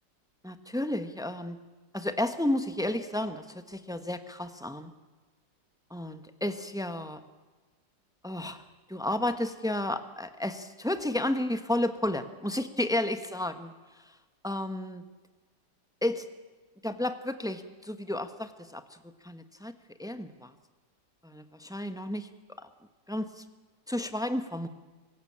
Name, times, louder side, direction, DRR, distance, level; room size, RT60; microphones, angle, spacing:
voice 1, 0.4-1.6 1.9-4.9 5.9-7.2 8.2-8.6 8.9-13.7 14.4-15.0 16.0-16.3 16.8-18.8 19.2-19.7 20.0-20.5 21.2-22.3 22.6-22.7 23.1-23.4 23.9-24.7, left 1 dB, 5° right, 9 dB, 0.7 m, -32 dB
24.5 x 16.0 x 8.6 m, 1.3 s
omnidirectional pair, 1.9 m